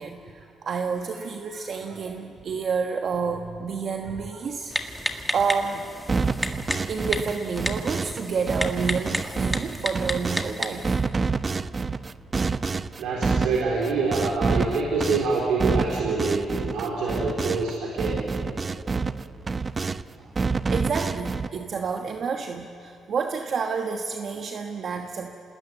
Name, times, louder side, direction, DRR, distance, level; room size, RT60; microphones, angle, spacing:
voice 1, 0.0-4.7 5.0-5.9 6.9-10.9 20.7-25.3, right 5 dB, 55° right, 4 dB, 1.3 m, -29 dB
Typing, 4.7-10.9, left 1 dB, 5° left, 1.9 m, -32 dB
sound 1, 6.1-8.2 8.5-10.5 10.8-17.7 18.0-20.0 20.4-21.5, right 4 dB, 30° right, 0.6 m, -28 dB
voice 2, 13.0-18.2, right 3 dB, 85° right, -3 dB, 4.0 m, -26 dB
27.5 x 20.0 x 9.3 m, 2.9 s
cardioid pair, 90°, 0 cm